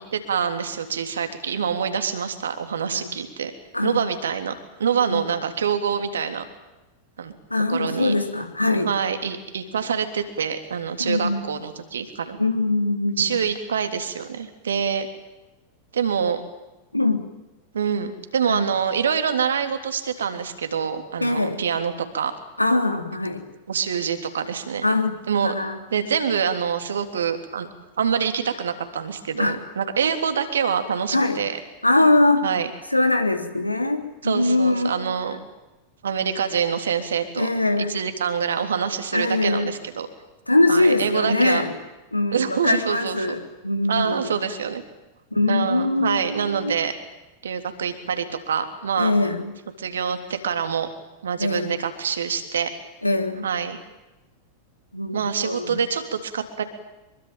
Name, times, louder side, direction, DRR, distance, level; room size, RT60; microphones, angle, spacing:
voice 1, 0.1-3.5 3.8-4.5 4.8-6.4 7.2-7.3 7.7-8.1 8.8-12.4 13.2-15.1 15.9-16.4 17.7-22.3 23.7-24.9 25.3-25.5 25.9-27.7 28.0-31.6 32.4-32.7 34.2-35.4 36.0-37.5 37.8-40.1 40.7-41.6 42.3-43.2 43.9-44.8 45.5-46.9 47.4-49.1 49.8-50.9 51.2-52.7 53.4-53.8 55.1-56.6, right 7 dB, 65° right, 7 dB, 3.4 m, -25 dB
voice 2, 7.5-8.9 11.0-11.4 12.4-13.4 16.9-17.2 18.4-18.7 21.2-21.6 22.6-23.4 24.8-25.8 29.4-29.6 31.1-31.4 31.8-32.4 32.9-35.1 37.4-37.9 39.1-39.7 40.5-41.7 42.1-44.4 45.3-46.8 49.0-49.5 51.4-51.8 53.0-53.5 54.9-55.8, left 2 dB, 85° left, 6 dB, 3.3 m, -22 dB
26.0 x 23.5 x 9.2 m, 1.0 s
figure-of-eight pair, 90°, 0 cm